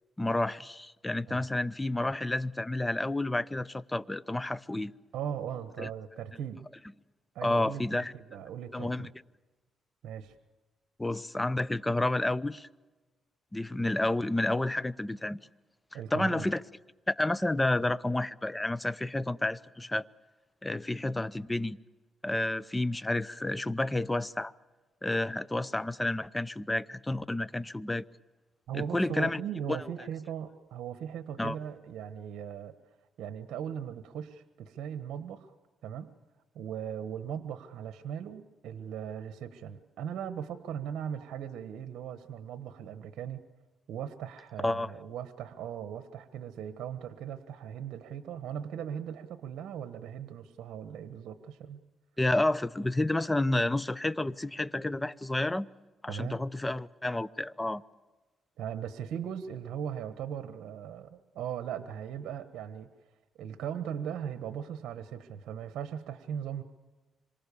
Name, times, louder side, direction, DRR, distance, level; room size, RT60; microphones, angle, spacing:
voice 1, 0.2-4.9 5.8-5.9 7.4-8.1 8.7-9.1 11.0-12.7 13.5-15.4 16.1-16.6 17.1-20.1 20.6-21.8 22.2-24.5 25.0-28.0 28.7-29.4 29.7-29.8 31.4-31.6 44.6-44.9 52.2-55.7 56.0-57.8, left 2 dB, 10° left, 0.7 m, -30 dB
voice 2, 5.1-6.7 7.3-9.1 10.0-10.3 15.9-16.5 28.7-32.7 33.2-35.5 35.8-36.1 36.5-43.4 43.9-51.8 56.1-56.4 58.6-62.9 63.4-66.6, right 8 dB, 75° right, 1.3 m, -38 dB
26.5 x 24.0 x 7.0 m
cardioid pair, 90°, 0 cm